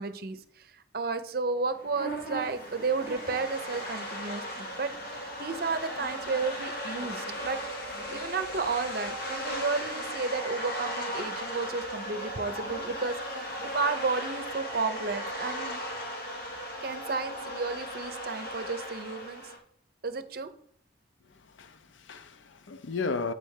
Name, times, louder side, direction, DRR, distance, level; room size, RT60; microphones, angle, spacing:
voice 1, 0.0-7.6 8.1-13.4 13.7-15.8 16.8-19.4 20.0-20.5, right 4 dB, 55° right, 0.6 m, -32 dB
sound 1, 1.7-19.6, equal, 55° left, 1.7 m, -37 dB
voice 2, 21.2-23.3, left 4 dB, 90° left, 0.6 m, -35 dB
8.6 x 3.4 x 6.4 m
head